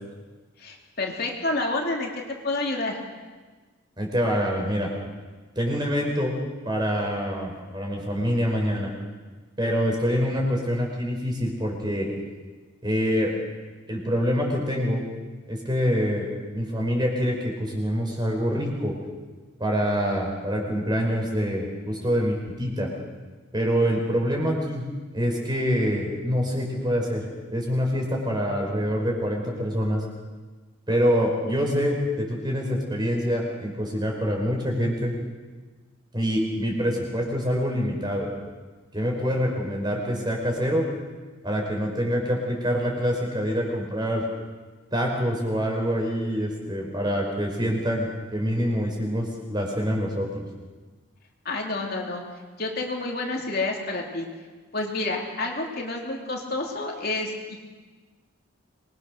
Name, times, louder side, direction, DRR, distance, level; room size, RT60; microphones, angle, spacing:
voice 1, 0.6-2.1 2.4-3.0 51.4-52.2 52.6-54.3 54.7-57.6, left 2 dB, 50° left, 0 dB, 2.9 m, -29 dB
voice 2, 4.0-4.9 5.6-6.3 6.7-8.9 9.6-12.1 12.8-13.3 13.9-15.0 15.5-16.3 16.5-18.9 19.6-22.9 23.5-24.8 25.1-30.0 30.9-35.1 36.1-38.3 38.9-40.9 41.4-44.2 44.9-50.3, equal, 20° right, 0 dB, 5.4 m, -25 dB
26.0 x 21.5 x 6.7 m, 1.3 s
head